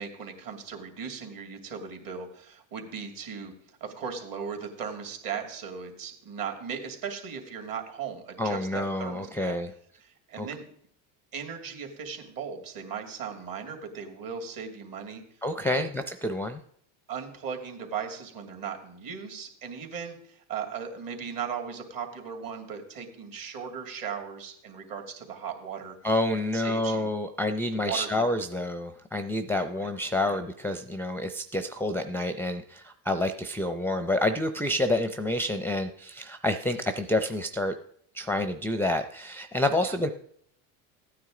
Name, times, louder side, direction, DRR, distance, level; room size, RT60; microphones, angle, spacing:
voice 1, 0.0-3.5 3.8-9.6 10.0-10.6 11.3-15.2 15.6-15.9 17.1-26.0 26.5-27.1 27.7-28.4 29.7-29.9 30.2-30.4 39.8-40.0, right 6 dB, 50° right, 3 dB, 2.7 m, -37 dB
voice 2, 8.4-9.7 10.4-10.5 15.4-16.6 26.0-37.7 38.1-40.1, left 1 dB, 5° left, 8 dB, 0.5 m, -28 dB
15.0 x 9.4 x 3.8 m, 0.65 s
supercardioid pair, 100°, 45 cm